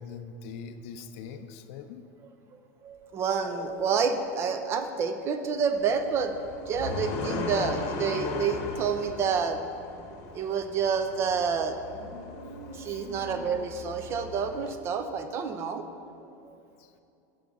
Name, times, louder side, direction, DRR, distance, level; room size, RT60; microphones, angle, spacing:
voice 1, 0.0-2.0 12.9-13.1 16.8-16.9, left 5 dB, 65° left, 9 dB, 0.5 m, -42 dB
voice 2, 2.8-9.8 10.3-11.7 12.7-15.9 16.4-16.6, right 6 dB, 30° right, 8 dB, 0.6 m, -29 dB
sound 1, 2.9-4.4 4.8-4.9 5.0-7.3 7.6-7.8 8.1-8.7 9.0-9.1 9.5-9.6 10.0-11.3 11.6-13.6, right 2 dB, 55° right, 1.2 m, -48 dB
sound 2, 5.8-14.7, left 4 dB, 45° left, 0.9 m, -38 dB
8.3 x 6.9 x 3.9 m, 2.7 s
supercardioid pair, 140°, 8 cm